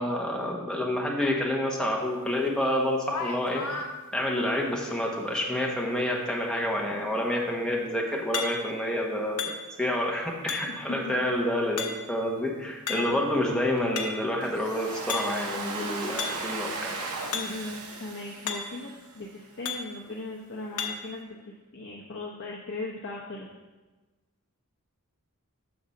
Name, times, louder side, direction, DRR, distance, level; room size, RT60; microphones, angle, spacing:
voice 1, 0.0-3.6 4.1-9.5 9.8-17.1, left 1 dB, 5° left, -1 dB, 1.1 m, -28 dB
sound 1, 2.5-2.6 3.0-3.9 8.3-8.9 9.4-9.9 10.5-10.9 11.8-12.2 12.9-13.3 13.7-14.3 15.1-15.5 16.2-16.5 17.3-17.6 17.9-18.0 18.5-18.9 19.7-20.0 20.8-21.1, left 5 dB, 85° left, 0.9 m, -34 dB
voice 2, 10.7-11.1 12.9-13.2 17.3-23.5, left 2 dB, 60° left, -2 dB, 0.8 m, -38 dB
Domestic sounds home sounds, 14.4-19.4, right 3 dB, 85° right, 1.0 m, -37 dB
7.0 x 3.9 x 6.5 m, 1.2 s
head